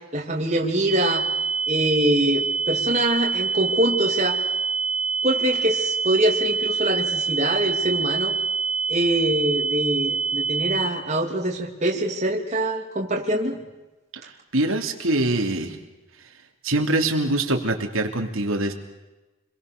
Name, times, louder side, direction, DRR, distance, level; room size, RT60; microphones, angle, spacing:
voice 1, 0.1-1.3 1.7-4.4 5.2-8.4 8.9-13.6, right 1 dB, 30° right, 0 dB, 3.1 m, -24 dB
sound 1, 0.9-10.9, right 5 dB, 10° right, 3.1 m, -25 dB
voice 2, 14.5-15.8 16.6-18.7, right 2 dB, 80° right, 3 dB, 3.2 m, -23 dB
29.5 x 22.5 x 6.9 m, 1.1 s
head